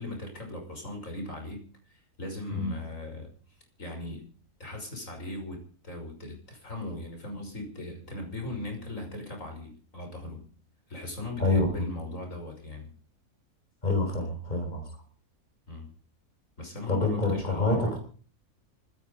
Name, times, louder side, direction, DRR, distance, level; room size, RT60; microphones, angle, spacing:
voice 1, 0.0-1.6 1.9-3.3 3.8-4.2 4.6-5.6 5.8-10.5 10.9-12.9 15.7-15.9 16.6-17.8, left 1 dB, 55° left, 3 dB, 6.3 m, -38 dB
voice 2, 11.4-11.9 13.8-15.0 16.9-18.0, left 2 dB, 25° left, 4 dB, 5.1 m, -27 dB
25.0 x 11.0 x 5.2 m, 0.43 s
omnidirectional pair, 1.7 m